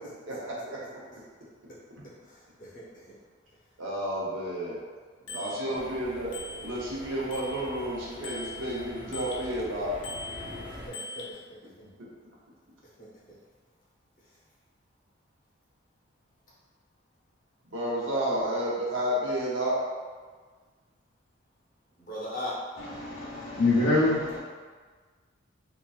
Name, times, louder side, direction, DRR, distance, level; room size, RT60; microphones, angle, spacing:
voice 1, 0.3-0.8 3.8-4.8 5.3-6.3 6.6-9.9 12.0-12.1 17.7-19.8, equal, 75° right, -5 dB, 0.7 m, -31 dB
voice 2, 5.2-5.8 10.7-11.4 13.0-13.1 22.0-22.5, left 1 dB, 40° left, -8 dB, 0.8 m, -39 dB
Bicycle bell, 5.3-5.6 6.3-7.0 7.3-9.5 10.0-11.3, left 2 dB, 65° left, 0.4 m, -41 dB
sound 1, 5.7-10.9, equal, 25° right, 0.6 m, -44 dB
voice 3, 22.8-24.4, left 2 dB, 85° left, -8 dB, 1.0 m, -25 dB
2.9 x 2.4 x 2.4 m, 1.5 s
head